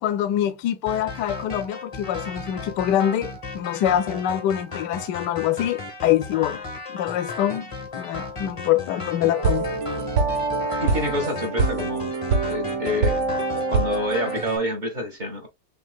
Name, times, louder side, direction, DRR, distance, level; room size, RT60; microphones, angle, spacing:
voice 1, 0.0-6.6 6.9-7.7 7.9-9.7, left 11 dB, 75° left, 1.2 m, -24 dB
sound 1, 0.9-14.6, left 3 dB, 25° left, 0.7 m, -35 dB
sound 2, 9.4-14.4, right 4 dB, 90° right, 1.6 m, -25 dB
voice 2, 10.8-12.2 12.5-13.2 13.7-15.5, left 1 dB, 30° right, 1.3 m, -27 dB
6.4 x 2.8 x 2.3 m
omnidirectional pair, 2.0 m